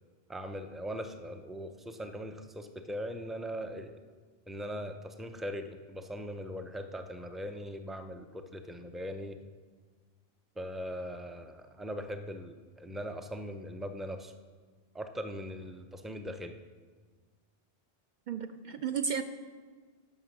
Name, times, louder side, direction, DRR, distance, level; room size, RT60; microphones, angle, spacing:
voice 1, 0.3-4.0 4.5-9.4 10.6-14.3 14.9-16.5, equal, ahead, 7 dB, 0.4 m, -40 dB
voice 2, 18.3-19.2, right 6 dB, 55° right, 8 dB, 0.6 m, -33 dB
15.5 x 6.0 x 5.9 m, 1.5 s
omnidirectional pair, 1.1 m